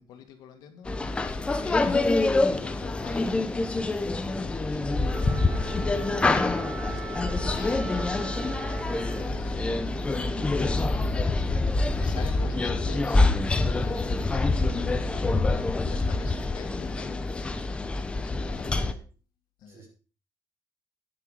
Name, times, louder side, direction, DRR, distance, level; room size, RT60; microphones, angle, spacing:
voice 1, 0.0-1.3 1.6-3.6 3.8-6.5 6.8-9.8 10.2-13.2 13.6-17.5 18.1-18.9 19.6-19.9, left 7 dB, 70° left, 7 dB, 2.1 m, -46 dB
sound 1, 0.9-18.9, left 2 dB, 15° left, 0.9 m, -26 dB
Wind instrument woodwind instrument, 5.1-9.5, right 4 dB, 20° right, 1.3 m, -40 dB
voice 2, 18.6-19.0 19.7-19.9, right 5 dB, 35° right, 1 dB, 4.4 m, -51 dB
9.8 x 9.3 x 5.0 m, 0.37 s
cardioid pair, 160°, 7 cm